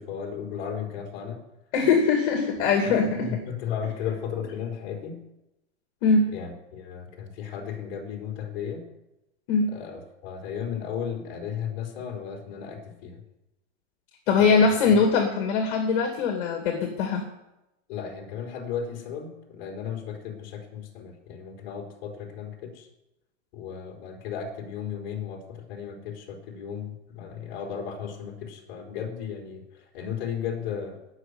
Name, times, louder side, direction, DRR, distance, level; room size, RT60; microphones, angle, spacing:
voice 1, 0.0-1.4 2.8-5.2 6.3-8.8 9.7-13.2 14.4-15.0 17.9-22.9 23.5-31.0, left 7 dB, 30° left, 1 dB, 3.8 m, -35 dB
voice 2, 1.7-3.4 6.0-6.3 9.5-9.7 14.3-17.2, left 4 dB, 50° left, 3 dB, 2.4 m, -22 dB
18.0 x 6.6 x 9.6 m, 0.94 s
supercardioid pair, 170°, 35 cm